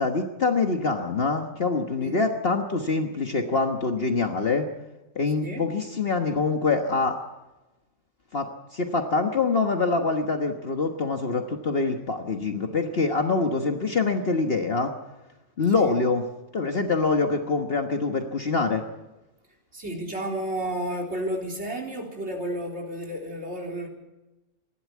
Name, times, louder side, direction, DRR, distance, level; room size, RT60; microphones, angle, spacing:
voice 1, 0.0-4.7 5.1-7.2 8.3-14.9 15.6-16.2 16.5-18.8, left 3 dB, 45° left, 4 dB, 1.5 m, -25 dB
voice 2, 19.7-23.9, right 1 dB, 55° right, 0 dB, 4.0 m, -32 dB
27.0 x 12.0 x 8.4 m, 1.0 s
omnidirectional pair, 1.4 m